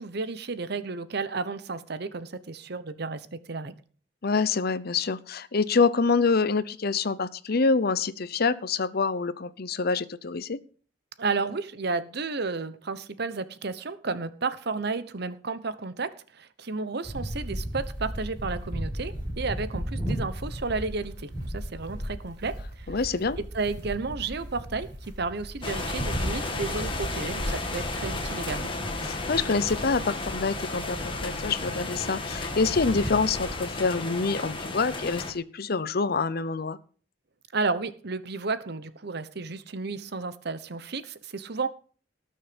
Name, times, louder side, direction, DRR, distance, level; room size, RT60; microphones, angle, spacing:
voice 1, 0.0-3.7 11.2-23.0 23.5-28.7 37.5-41.7, right 4 dB, 60° right, 13 dB, 1.0 m, -32 dB
voice 2, 4.2-10.6 22.9-23.4 29.0-36.8, left 4 dB, 55° left, 16 dB, 0.7 m, -26 dB
sound 1, 17.0-33.6, equal, 25° right, 5.3 m, -36 dB
sound 2, 25.6-35.3, left 3 dB, 30° left, 1.9 m, -34 dB
18.5 x 6.6 x 5.2 m, 0.42 s
head